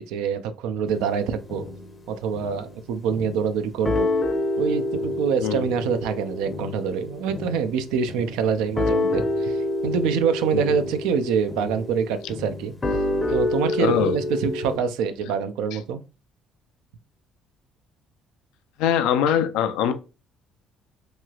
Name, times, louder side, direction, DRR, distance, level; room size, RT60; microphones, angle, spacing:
voice 1, 0.0-1.7 2.1-4.1 4.6-9.6 9.8-12.7 13.3-16.0, right 6 dB, 85° right, 0.4 m, -25 dB
sound 1, 0.9-2.0 2.3-2.7 3.1-3.5 3.9-14.8, left 2 dB, 30° left, 0.6 m, -28 dB
voice 2, 13.8-14.2 18.8-19.9, left 9 dB, 85° left, 0.3 m, -22 dB
3.0 x 2.9 x 2.3 m
supercardioid pair, 80°, 0 cm